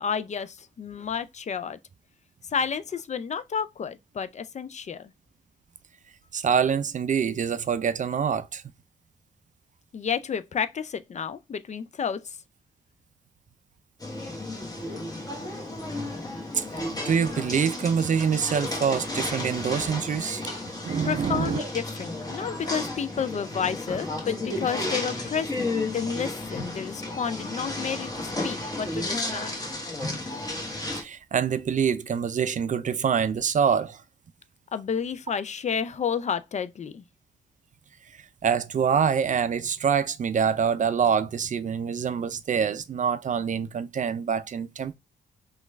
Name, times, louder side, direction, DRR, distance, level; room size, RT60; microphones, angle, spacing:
voice 1, 0.0-1.8 2.5-5.1 9.9-12.2 21.0-29.6 34.7-37.0, left 7 dB, 40° left, 0.4 m, -31 dB
voice 2, 6.3-8.6 16.5-16.7 17.0-20.4 20.8-21.7 30.9-34.0 38.4-45.0, right 7 dB, 45° right, 0.4 m, -25 dB
sound 1, 14.0-31.0, left 2 dB, 20° left, 1.2 m, -33 dB
3.0 x 2.3 x 3.2 m
supercardioid pair, 50°, 18 cm